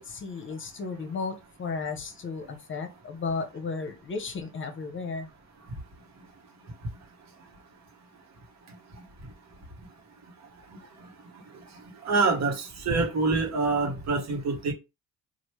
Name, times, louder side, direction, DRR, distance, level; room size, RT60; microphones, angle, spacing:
voice 1, 0.0-5.3, left 4 dB, 40° left, 0.7 m, -34 dB
voice 2, 12.0-14.7, right 3 dB, 60° right, 1.2 m, -25 dB
3.2 x 2.5 x 3.1 m
cardioid pair, 90°, 30 cm